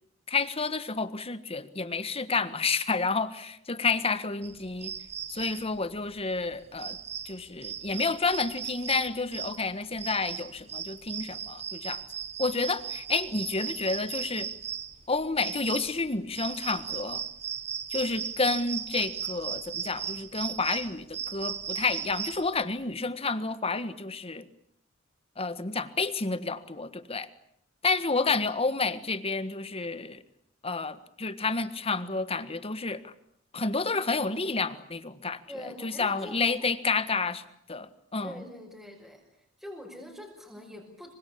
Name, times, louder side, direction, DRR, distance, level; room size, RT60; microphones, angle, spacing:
voice 1, 0.3-4.9 5.3-7.0 7.2-12.0 12.4-14.5 15.1-17.2 17.9-24.4 25.4-27.3 27.8-30.2 30.6-33.1 33.5-38.3, left 4 dB, 30° left, 13 dB, 1.5 m, -30 dB
sound 1, 4.4-22.6, right 8 dB, 35° right, 1.4 m, -37 dB
voice 2, 35.5-36.7 38.2-39.2 39.6-41.1, left 1 dB, ahead, -2 dB, 5.6 m, -44 dB
26.5 x 24.5 x 8.7 m, 0.72 s
head